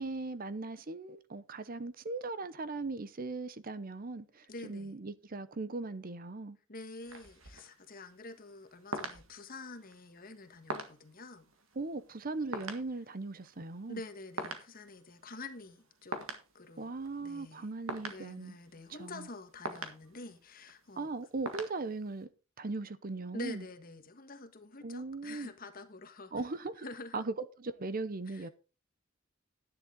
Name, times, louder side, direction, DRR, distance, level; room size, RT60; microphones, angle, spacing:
voice 1, 0.0-6.6 11.8-14.0 16.8-18.5 19.0-19.2 21.0-22.3 22.6-23.6 24.8-25.5 26.3-26.9 27.1-27.3 27.6-28.5, right 3 dB, 45° right, 0.8 m, -39 dB
voice 2, 4.5-5.0 6.7-11.5 13.9-16.2 16.5-17.7 18.1-21.1 23.3-26.5 26.8-27.2 28.3-28.5, left 2 dB, 45° left, 1.5 m, -47 dB
sound 1, 7.0-22.2, right 2 dB, 85° right, 1.8 m, -45 dB
10.5 x 10.0 x 3.9 m
head